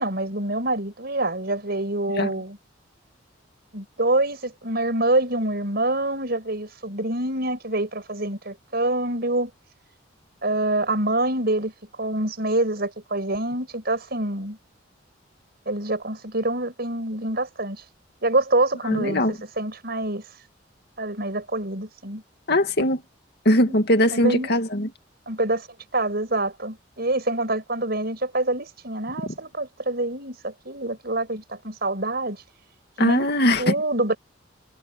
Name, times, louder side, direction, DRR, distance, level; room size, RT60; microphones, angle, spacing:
voice 1, 0.0-2.6 3.7-9.5 10.4-11.7 12.0-14.6 15.7-17.8 18.2-20.2 21.0-22.2 23.5-23.8 24.1-24.5 25.3-25.7 25.9-32.4 33.0-33.3 33.6-34.1, right 2 dB, 55° right, 6.6 m, -26 dB
voice 2, 18.9-19.3 22.5-23.0 23.4-24.9 33.0-33.7, left 1 dB, 55° left, 2.5 m, -20 dB
head